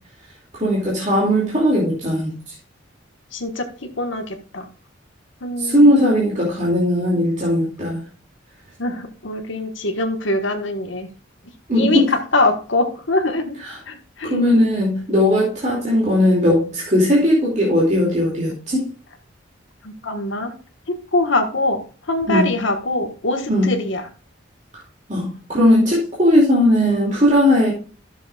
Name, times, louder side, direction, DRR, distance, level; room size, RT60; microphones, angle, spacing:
voice 1, 0.5-2.3 5.6-8.0 11.7-12.1 13.6-13.8 14.2-18.9 22.3-22.6 23.5-23.7 25.1-27.7, left 1 dB, 35° right, -5 dB, 2.6 m, -18 dB
voice 2, 3.3-4.7 5.4-6.0 8.8-11.1 11.7-13.6 13.9-14.4 19.8-20.6 20.9-24.0, left 2 dB, 70° left, 5 dB, 1.5 m, -23 dB
13.5 x 6.7 x 2.4 m, 0.38 s
head